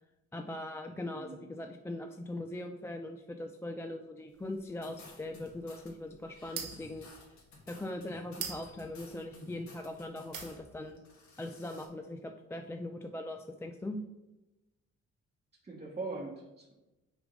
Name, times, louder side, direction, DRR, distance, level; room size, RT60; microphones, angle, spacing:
voice 1, 0.3-7.1 7.7-11.0 11.4-14.0, left 1 dB, 10° left, 5 dB, 0.4 m, -41 dB
voice 2, 0.9-1.5 15.6-16.7, right 3 dB, 20° right, -2 dB, 1.1 m, -42 dB
sound 1, 4.3-10.0 10.3-10.9, right 7 dB, 80° right, 0.9 m, -45 dB
sound 2, 4.8-5.9 6.3-10.6 11.0-11.9, left 3 dB, 65° left, 1.9 m, -54 dB
6.0 x 3.6 x 5.3 m, 1.0 s
cardioid pair, 90°, 30 cm